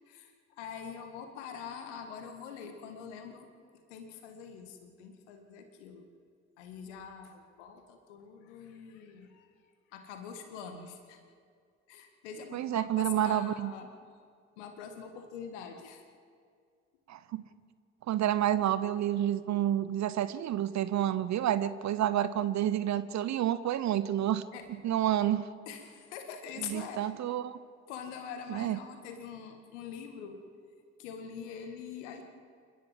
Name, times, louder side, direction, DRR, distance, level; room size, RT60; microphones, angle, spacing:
voice 1, 0.1-3.5 3.7-6.1 6.6-9.5 9.9-11.2 11.9-13.9 14.6-16.0 24.5-24.7 25.7-27.1 27.9-30.4 31.0-32.2, left 7 dB, 75° left, 6 dB, 1.9 m, -44 dB
voice 2, 12.5-13.7 17.1-17.4 18.1-24.4 24.8-25.5 26.6-27.6 28.5-28.8, right 11 dB, 50° right, 15 dB, 0.9 m, -29 dB
29.0 x 12.5 x 7.5 m, 2.2 s
figure-of-eight pair, 40°, 36 cm